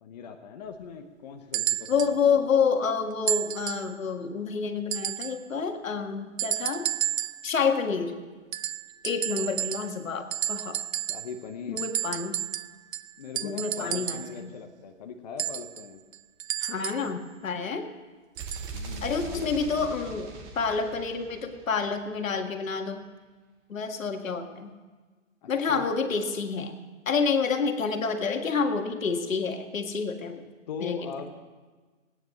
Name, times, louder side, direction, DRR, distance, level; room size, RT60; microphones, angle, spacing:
voice 1, 0.0-2.4 11.1-11.8 13.2-16.0 18.7-19.9 25.4-25.9 30.7-31.4, left 6 dB, 30° left, 5 dB, 0.9 m, -40 dB
sound 1, 1.5-2.2 3.3-3.9 4.9-5.4 6.4-7.5 8.5-10.0 10.3-11.4 11.8-14.4 15.4-17.1 18.4-18.7 19.6-19.7, right 11 dB, 80° right, 0.6 m, -32 dB
voice 2, 1.9-6.9 7.4-8.2 9.0-10.8 11.7-12.4 13.4-14.5 16.6-17.9 19.0-20.3 20.6-23.0 23.7-24.7 25.5-26.8 27.1-30.4 30.8-31.1, left 5 dB, 80° left, 6 dB, 1.8 m, -28 dB
sound 2, 18.3-22.2, right 3 dB, 10° right, 0.7 m, -41 dB
17.5 x 9.6 x 6.4 m, 1.4 s
hypercardioid pair, 160°, 39 cm